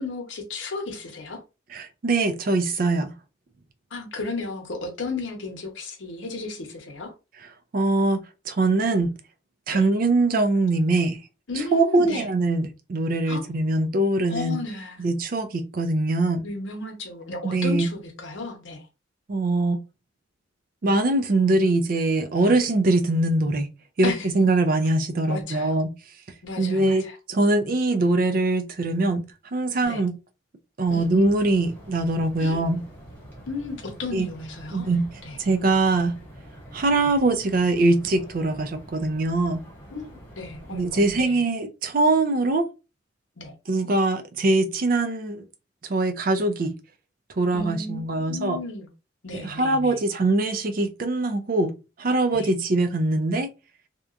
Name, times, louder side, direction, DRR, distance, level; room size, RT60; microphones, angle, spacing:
voice 1, 0.0-1.4 3.9-7.1 9.7-9.9 11.5-12.3 13.3-13.5 14.3-15.0 16.4-18.9 22.5-22.6 24.0-24.3 25.3-25.8 26.4-27.2 29.8-30.0 30.9-31.1 32.4-32.7 33.5-34.9 35.2-35.4 37.0-37.1 39.9-41.4 43.4-43.5 47.5-48.9 49.2-50.0 52.3-52.5, left 3 dB, 75° left, 0.8 m, -34 dB
voice 2, 1.7-3.1 7.7-8.2 8.5-9.1 9.7-11.2 11.6-14.6 15.0-16.4 17.4-17.9 19.3-19.8 20.8-23.7 24.0-25.9 26.6-29.2 29.5-30.2 30.8-32.8 34.1-34.3 34.7-35.0 35.4-36.1 36.7-39.6 40.7-42.6 43.7-45.5 45.8-46.7 47.3-48.6 49.3-51.7 52.0-53.5, right 2 dB, 45° right, 0.4 m, -22 dB
sound 1, 30.8-41.2, equal, 10° left, 1.0 m, -45 dB
2.8 x 2.2 x 2.4 m
head